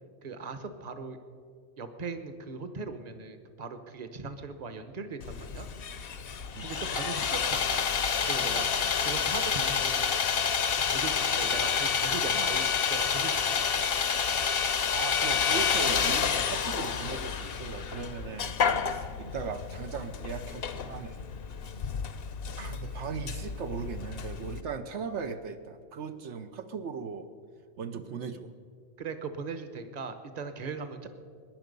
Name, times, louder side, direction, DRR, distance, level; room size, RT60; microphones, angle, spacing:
voice 1, 0.2-1.2 1.8-5.7 6.6-7.9 8.2-10.3 10.7-13.6 29.0-31.1, right 4 dB, 40° right, 9 dB, 1.1 m, -39 dB
Sawing, 5.2-24.6, left 6 dB, 60° left, 0.9 m, -29 dB
voice 2, 14.9-18.6 18.9-21.2 22.6-27.3 27.8-28.5, right 5 dB, 75° right, 7 dB, 1.1 m, -38 dB
22.0 x 10.5 x 5.3 m, 2.1 s
omnidirectional pair, 1.2 m